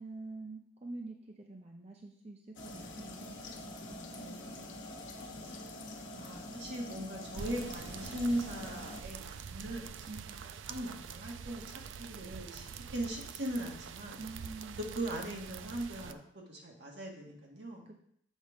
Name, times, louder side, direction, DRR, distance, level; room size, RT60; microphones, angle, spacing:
voice 1, 0.0-3.4 10.1-10.4 14.2-14.9 17.9-18.0, right 2 dB, 35° right, 2 dB, 0.6 m, -46 dB
sound 1, 2.6-9.0, left 1 dB, 85° left, 1.1 m, -45 dB
voice 2, 4.1-5.0 5.4-5.6 6.1-9.9 10.3-12.6 12.9-14.2 14.8-17.8, right 1 dB, 65° right, -1 dB, 1.8 m, -40 dB
sound 2, 7.3-16.1, right 6 dB, 85° right, 0.4 m, -46 dB
7.3 x 4.2 x 5.0 m, 0.68 s
head